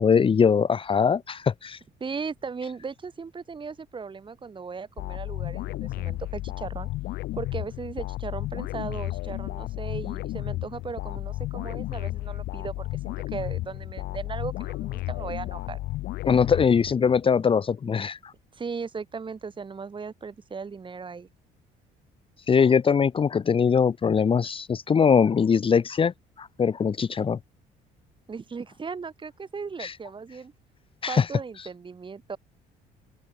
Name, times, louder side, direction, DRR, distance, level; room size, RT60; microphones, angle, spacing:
voice 1, 0.0-1.8 16.2-18.3 22.5-27.4 29.8-29.9 31.0-31.3, left 6 dB, 30° left, 1.2 m, -22 dB
voice 2, 2.0-6.9 7.4-15.8 18.5-21.3 28.3-30.5 31.1-32.4, right 5 dB, 30° right, 5.2 m, -37 dB
sound 1, 5.0-17.2, left 17 dB, 80° left, 1.2 m, -33 dB
open air
cardioid pair, 110°, 17 cm